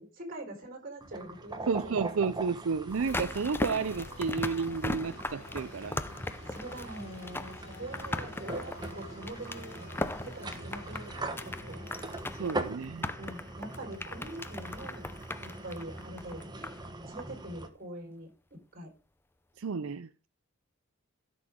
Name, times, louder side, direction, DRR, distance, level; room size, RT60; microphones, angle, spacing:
voice 1, 0.0-2.3 6.5-9.9 10.2-11.8 13.2-15.1 15.4-16.5 17.1-18.9, right 1 dB, 45° right, 4.6 m, -44 dB
sound 1, 1.0-17.7, right 2 dB, 20° right, 1.3 m, -42 dB
voice 2, 1.7-6.0 12.3-13.1 19.6-20.1, right 5 dB, 80° right, 0.5 m, -31 dB
sound 2, 2.9-16.9 17.2-17.3, left 2 dB, 10° left, 0.5 m, -39 dB
sound 3, 3.0-13.6, left 2 dB, 30° left, 4.5 m, -50 dB
16.5 x 6.7 x 3.7 m
head